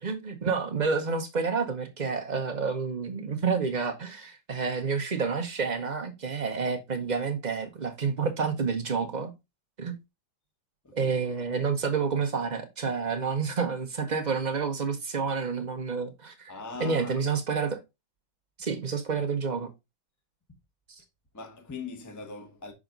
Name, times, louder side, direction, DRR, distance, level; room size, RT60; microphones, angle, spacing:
voice 1, 0.0-9.3 9.8-9.9 10.9-16.5 16.8-17.8 18.6-19.7, right 5 dB, 60° right, 0.4 m, -29 dB
voice 2, 16.5-17.3 21.3-22.7, left 4 dB, 15° left, 0.8 m, -40 dB
6.1 x 4.9 x 3.8 m
omnidirectional pair, 2.1 m